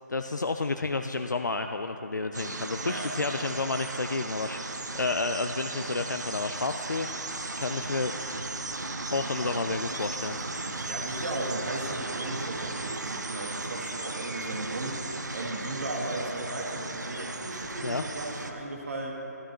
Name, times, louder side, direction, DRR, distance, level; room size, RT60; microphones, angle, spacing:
voice 1, 0.1-4.6 4.9-8.4 9.1-10.4 17.8-18.0, left 3 dB, 85° left, 6 dB, 0.5 m, -31 dB
sound 1, 2.3-18.5, right 2 dB, 75° right, 0.9 m, -36 dB
voice 2, 2.8-3.5 10.9-19.1, right 2 dB, 50° right, 0 dB, 1.7 m, -36 dB
13.0 x 12.5 x 3.0 m, 3.0 s
figure-of-eight pair, 155°, 10 cm